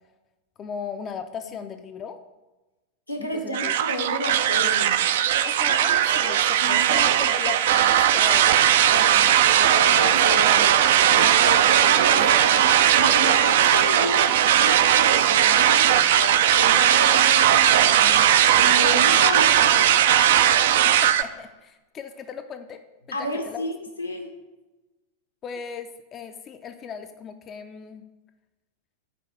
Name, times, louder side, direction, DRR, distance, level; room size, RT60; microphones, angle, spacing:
voice 1, 0.6-2.2 3.2-3.7 5.4-8.6 20.8-22.8 23.1-23.6 25.4-28.1, left 7 dB, 30° left, 8 dB, 0.4 m, -37 dB
voice 2, 3.1-5.0 6.6-7.0 8.9-18.2 18.6-19.9 23.1-24.3, left 1 dB, 85° left, 2 dB, 1.0 m, -31 dB
sound 1, 3.5-21.2, right 10 dB, 55° right, 0.3 m, -18 dB
5.8 x 4.6 x 6.2 m, 1.1 s
figure-of-eight pair, 90°, 0 cm